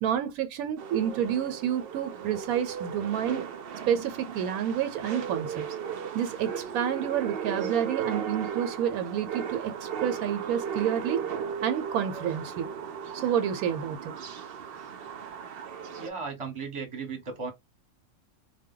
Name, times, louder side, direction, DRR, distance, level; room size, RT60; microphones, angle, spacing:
voice 1, 0.0-3.4 3.9-5.6 6.1-11.2 11.6-12.7 13.1-14.1, right 9 dB, 85° right, 1.0 m, -29 dB
sound 1, 0.8-16.1, right 7 dB, 65° right, 0.6 m, -36 dB
voice 2, 16.0-17.5, right 4 dB, 25° right, 0.9 m, -36 dB
2.2 x 2.1 x 3.6 m
omnidirectional pair, 1.5 m